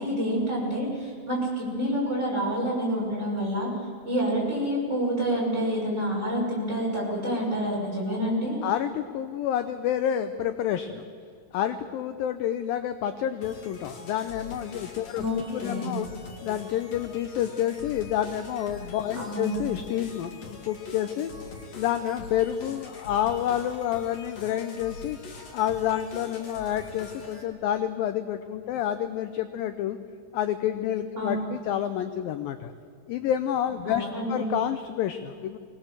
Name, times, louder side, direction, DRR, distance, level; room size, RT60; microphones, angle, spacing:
voice 1, 0.0-3.7 4.0-8.7 15.1-16.0 19.1-19.5 31.2-31.5 33.8-34.5, equal, 15° right, -4 dB, 6.2 m, -28 dB
voice 2, 8.6-11.0 11.5-16.1 16.4-21.3 21.7-25.2 25.5-30.0 30.3-32.7 33.1-35.6, left 10 dB, 75° left, 9 dB, 2.2 m, -29 dB
sound 1, 13.4-27.4, left 3 dB, 45° left, 2.7 m, -43 dB
23.5 x 19.0 x 7.5 m, 2.4 s
omnidirectional pair, 4.8 m